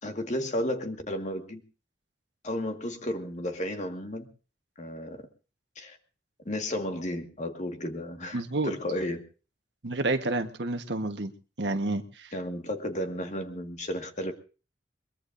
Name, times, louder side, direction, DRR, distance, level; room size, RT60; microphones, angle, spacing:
voice 1, 0.0-1.6 2.4-4.3 4.8-5.2 5.8-6.0 6.5-9.2 12.3-14.3, left 1 dB, 45° left, 5 dB, 1.9 m, -33 dB
voice 2, 8.3-8.7 9.8-11.3 11.6-12.3, right 2 dB, 80° right, 7 dB, 1.3 m, -29 dB
22.5 x 21.5 x 2.7 m, 0.36 s
head